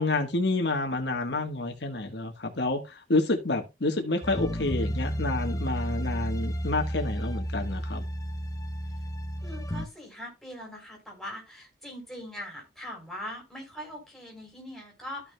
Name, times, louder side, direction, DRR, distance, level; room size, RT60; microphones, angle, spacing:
voice 1, 0.0-8.0, left 2 dB, 65° left, 1.4 m, -29 dB
sound 1, 4.2-9.9, equal, 20° left, 0.8 m, -32 dB
voice 2, 9.4-15.3, left 1 dB, ahead, 3.9 m, -41 dB
14.0 x 6.0 x 2.2 m
head